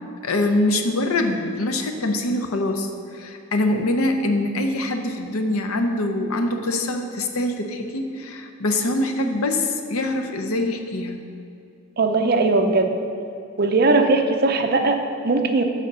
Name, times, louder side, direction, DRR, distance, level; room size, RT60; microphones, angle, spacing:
voice 1, 0.2-11.2, left 2 dB, 80° left, 5 dB, 0.7 m, -24 dB
voice 2, 12.0-13.0 13.6-15.6, right 3 dB, 45° right, 5 dB, 0.5 m, -19 dB
6.5 x 4.9 x 6.7 m, 2.6 s
head